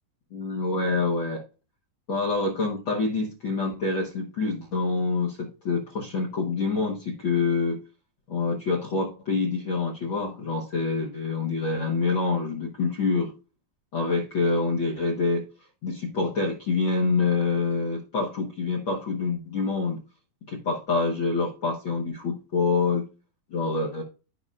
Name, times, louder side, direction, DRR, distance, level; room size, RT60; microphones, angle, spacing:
voice 1, 0.3-1.4 2.1-7.8 8.3-13.3 13.9-15.4 15.8-20.0 20.5-23.1 23.5-24.0, left 4 dB, 80° left, 0 dB, 1.1 m, -26 dB
14.5 x 5.4 x 2.5 m, 0.32 s
omnidirectional pair, 4.3 m